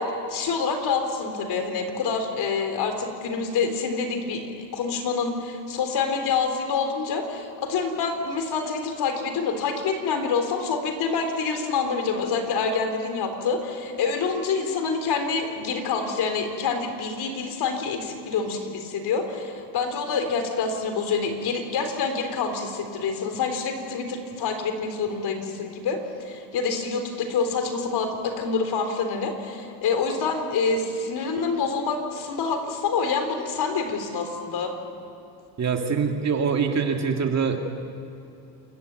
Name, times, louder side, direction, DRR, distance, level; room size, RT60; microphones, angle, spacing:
voice 1, 0.0-34.7, left 5 dB, 55° left, 6 dB, 4.0 m, -27 dB
voice 2, 35.6-37.6, right 6 dB, 35° right, 3 dB, 2.4 m, -24 dB
28.5 x 14.5 x 9.2 m, 2.8 s
supercardioid pair, 110°, 48 cm